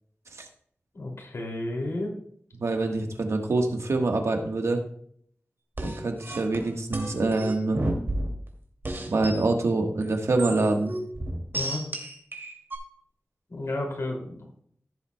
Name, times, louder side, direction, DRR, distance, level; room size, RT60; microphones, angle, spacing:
voice 1, 0.9-2.1 11.5-11.8 13.5-14.4, left 2 dB, 75° left, 0 dB, 2.7 m, -32 dB
voice 2, 2.6-4.8 5.8-7.8 9.1-10.9, right 2 dB, 85° right, 3 dB, 1.4 m, -25 dB
sound 1, 5.8-8.5 8.8-9.4 10.0-12.8, right 1 dB, 50° right, 2.5 m, -32 dB
16.0 x 7.4 x 2.3 m, 0.63 s
wide cardioid pair, 55°, 5 cm